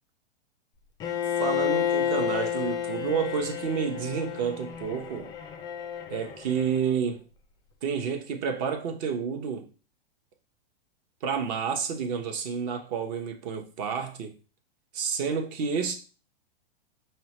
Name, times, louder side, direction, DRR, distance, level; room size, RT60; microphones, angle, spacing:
Bowed string instrument, 1.0-7.0, left 9 dB, 15° left, 0.3 m, -31 dB
voice 1, 1.4-5.3 6.1-7.2 7.8-9.7 11.2-14.3 14.9-15.9, right 6 dB, 45° right, 0.8 m, -30 dB
5.2 x 2.2 x 2.9 m
hypercardioid pair, 125°, 30 cm